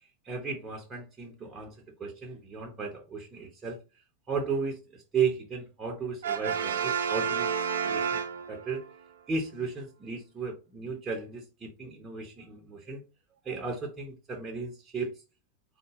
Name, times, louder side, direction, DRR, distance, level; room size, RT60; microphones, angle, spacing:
voice 1, 0.2-1.7 2.0-3.8 4.3-7.5 7.8-8.2 8.5-8.8 9.3-13.0 13.4-15.2, right 5 dB, 20° right, 0.7 m, -34 dB
Brass instrument, 6.2-8.9, right 7 dB, 65° right, 0.4 m, -30 dB
3.8 x 2.2 x 3.5 m
figure-of-eight pair, 90°, 0 cm